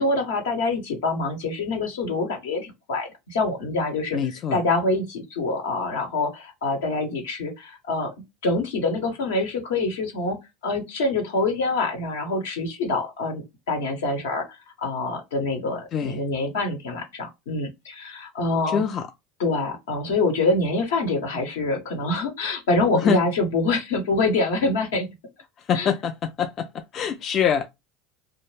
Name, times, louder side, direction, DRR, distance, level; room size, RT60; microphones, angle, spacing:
voice 1, 0.0-4.2 4.5-8.1 8.4-10.4 10.6-18.8 19.4-25.1 25.7-25.9, left 2 dB, 80° left, 1.0 m, -25 dB
voice 2, 4.1-4.6 15.9-16.2 18.7-19.1 22.9-23.2 25.6-27.7, left 7 dB, 45° left, 0.3 m, -25 dB
2.4 x 2.1 x 3.2 m
hypercardioid pair, 90°, 0 cm